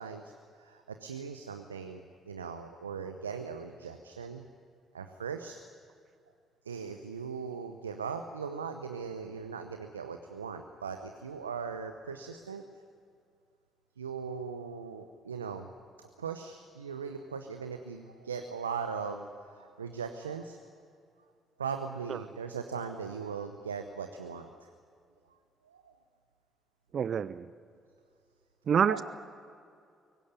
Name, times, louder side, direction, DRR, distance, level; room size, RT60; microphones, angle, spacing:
voice 1, 0.0-4.5 4.9-5.6 6.6-12.6 14.0-15.7 16.0-20.6 21.6-24.7 25.6-25.9 28.9-29.0, right 6 dB, 90° right, 7 dB, 0.8 m, -39 dB
voice 2, 26.9-27.5 28.7-29.0, right 7 dB, 50° right, 16 dB, 0.6 m, -26 dB
23.5 x 18.0 x 9.6 m, 2.4 s
figure-of-eight pair, 45°, 0 cm